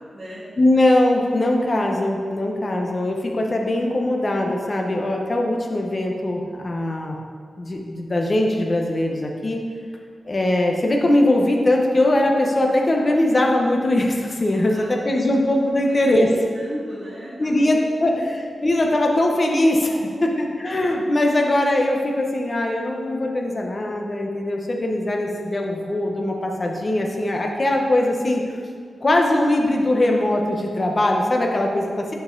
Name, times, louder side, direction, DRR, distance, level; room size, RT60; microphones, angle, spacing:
voice 1, 0.0-0.4 14.6-14.9 15.3-15.4 16.1-18.2 20.0-20.7, equal, 25° right, -11 dB, 1.9 m, -37 dB
voice 2, 0.6-7.2 7.6-9.6 10.2-16.3 17.4-18.1 18.6-28.4 29.0-32.1, left 1 dB, 30° left, 1 dB, 0.8 m, -21 dB
7.5 x 5.5 x 3.8 m, 2.1 s
wide cardioid pair, 145°, 0 cm